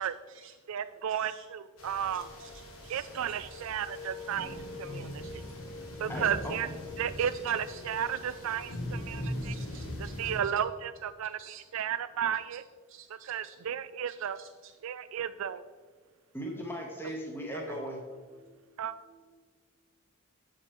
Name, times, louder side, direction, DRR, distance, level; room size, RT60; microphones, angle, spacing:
voice 1, 0.0-0.5 1.1-1.5 2.1-2.5 2.8-3.1 3.5-3.6 5.2-5.3 7.2-7.3 7.7-7.8 9.4-10.1 10.4-10.5 11.4-11.8 12.9-13.6 14.1-14.7 17.1-17.2 17.5-17.8 18.1-19.3, right 6 dB, 60° right, 4 dB, 1.0 m, -52 dB
voice 2, 0.7-2.3 2.9-5.2 6.0-6.7 7.0-9.5 10.2-12.6 13.3-14.4 14.8-15.6 18.8-18.9, right 9 dB, 80° right, 14 dB, 0.4 m, -33 dB
sound 1, 1.8-10.4, left 1 dB, 75° left, 1.3 m, -40 dB
voice 3, 6.1-6.6 16.3-18.0, equal, 10° left, 1 dB, 0.9 m, -38 dB
7.2 x 5.1 x 4.4 m, 1.4 s
head